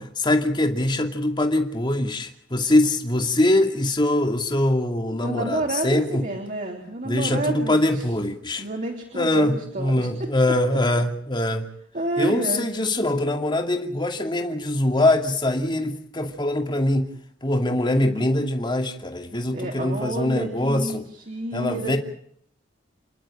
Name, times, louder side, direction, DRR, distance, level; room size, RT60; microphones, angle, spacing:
voice 1, 0.0-6.2 7.0-8.6 9.1-11.6 12.2-17.1 17.4-21.0 21.5-22.0, left 1 dB, 25° left, 4 dB, 2.5 m, -23 dB
voice 2, 5.2-8.1 8.6-10.1 11.9-12.7 19.5-22.0, right 1 dB, 45° right, 1 dB, 3.5 m, -29 dB
29.0 x 11.5 x 10.0 m, 0.66 s
head